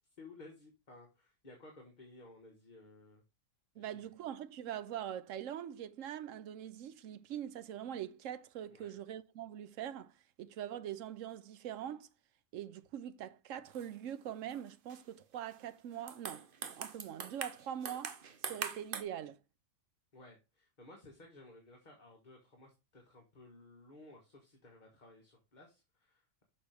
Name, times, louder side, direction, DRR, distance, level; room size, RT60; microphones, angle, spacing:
voice 1, 0.2-3.2 3.7-4.0 8.7-9.0 20.1-26.4, left 2 dB, 35° left, 1.7 m, -57 dB
voice 2, 3.8-12.1 12.5-18.2 18.4-19.4, right 10 dB, 75° right, 1.0 m, -43 dB
sound 1, 13.7-14.1 14.5-15.0 15.5-15.7 16.0-19.0, right 6 dB, 50° right, 0.9 m, -43 dB
6.6 x 5.9 x 3.4 m
omnidirectional pair, 1.3 m